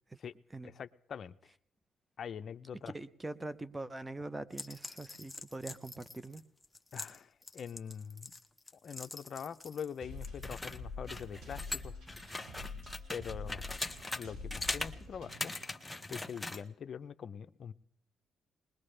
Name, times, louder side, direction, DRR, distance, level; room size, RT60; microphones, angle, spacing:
voice 1, 0.6-1.5 2.2-2.9 6.9-8.3 8.8-12.0 13.1-13.7 14.1-15.5 16.1-17.7, left 7 dB, 55° left, 11 dB, 0.5 m, -44 dB
voice 2, 2.9-6.4, right 2 dB, 15° right, 14 dB, 0.6 m, -43 dB
sound 1, 4.5-9.9 10.2-14.2 14.5-14.9 15.3-16.6, left 2 dB, 10° left, 0.9 m, -41 dB
sound 2, 9.4-16.2, right 5 dB, 65° right, 5.9 m, -69 dB
sound 3, 10.0-15.7, left 3 dB, 85° right, 4.9 m, -46 dB
21.0 x 20.0 x 3.3 m, 0.67 s
cardioid pair, 90°, 0 cm